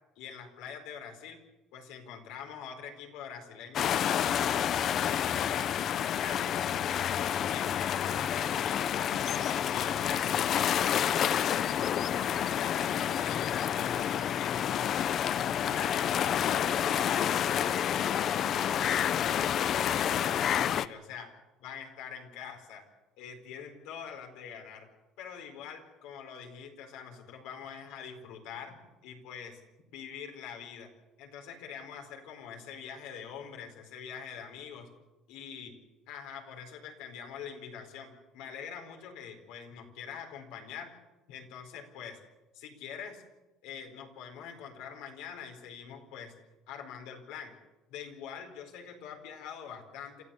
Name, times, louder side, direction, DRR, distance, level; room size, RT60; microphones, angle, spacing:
voice 1, 0.2-1.4 1.7-6.6 7.0-10.4 10.7-11.7 12.1-14.6 14.9-15.2 15.7-19.5 19.8-21.3 21.6-22.8 23.2-24.9 25.2-29.6 29.9-30.9 31.2-34.9 35.3-35.8 36.1-40.9 41.3-42.2 42.5-43.2 43.6-46.3 46.7-47.5 47.9-50.2, left 7 dB, 90° left, 4 dB, 4.4 m, -44 dB
sound 1, 3.7-20.9, left 9 dB, 45° left, 0.6 m, -29 dB
28.0 x 14.5 x 7.1 m, 1.1 s
cardioid pair, 145°, 0 cm